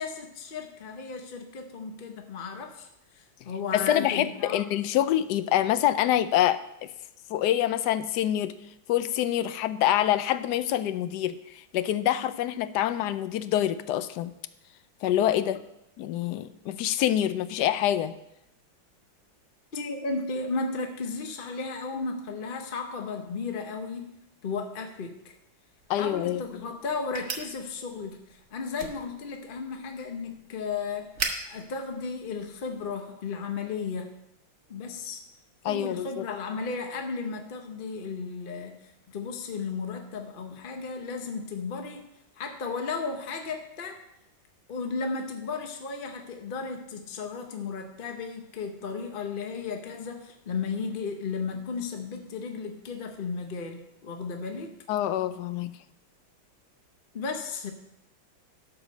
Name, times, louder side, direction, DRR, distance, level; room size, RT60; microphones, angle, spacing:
voice 1, 0.0-2.9 3.1-4.6 19.7-24.1 24.4-25.3 25.9-31.1 31.5-34.1 34.7-35.2 35.7-38.8 39.1-42.1 42.4-44.0 44.7-54.8 57.1-57.7, left 4 dB, 50° left, 4 dB, 0.6 m, -34 dB
voice 2, 3.7-6.9 7.3-8.5 8.9-14.3 15.0-15.6 16.0-18.1 25.9-26.4 35.6-36.3 54.9-55.8, left 12 dB, 75° left, 13 dB, 1.0 m, -26 dB
sound 1, 25.8-32.9, right 4 dB, 45° right, 1.3 m, -40 dB
12.0 x 4.9 x 6.4 m, 0.84 s
omnidirectional pair, 2.1 m